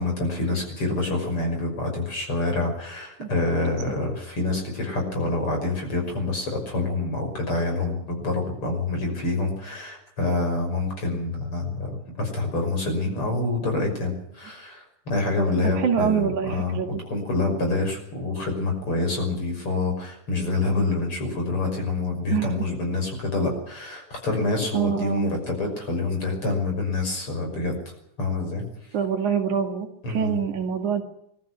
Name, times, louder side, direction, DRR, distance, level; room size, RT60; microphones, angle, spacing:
voice 1, 0.0-11.9 12.2-16.8 17.1-27.8 28.2-28.6 30.0-30.4, left 2 dB, 40° left, 3 dB, 6.7 m, -27 dB
voice 2, 15.8-17.0 22.3-22.6 24.7-25.4 28.9-31.0, right 7 dB, 70° right, 4 dB, 3.4 m, -25 dB
21.5 x 13.5 x 9.6 m, 0.76 s
omnidirectional pair, 3.6 m